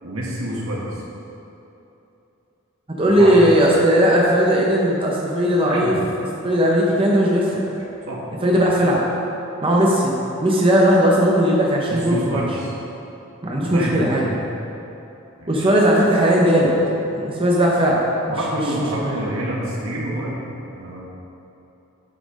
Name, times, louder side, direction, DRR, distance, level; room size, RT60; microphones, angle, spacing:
voice 1, 0.0-0.9 3.0-3.6 5.7-6.0 8.1-8.2 11.9-12.7 13.6-14.5 15.4-15.7 18.3-20.4 20.8-21.0, right 1 dB, 70° right, -4 dB, 1.9 m, -27 dB
voice 2, 3.0-5.9 6.4-7.8 8.4-9.0 9.6-10.1 10.4-12.4 13.4-14.3 15.5-16.8 17.1-18.6 19.0-19.2, equal, 25° right, -4 dB, 0.9 m, -17 dB
9.9 x 6.0 x 5.2 m, 2.9 s
head